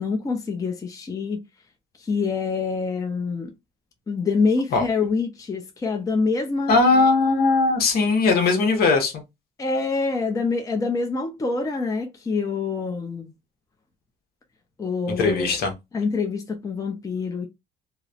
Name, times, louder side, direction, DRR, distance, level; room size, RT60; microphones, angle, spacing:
voice 1, 0.0-1.4 2.0-3.5 4.1-6.7 9.6-13.3 14.8-15.5 15.9-17.5, left 4 dB, 20° left, 0.5 m, -26 dB
voice 2, 6.7-9.2 15.2-15.7, left 3 dB, 65° left, 0.9 m, -19 dB
2.9 x 2.0 x 2.4 m
cardioid pair, 110°, 17 cm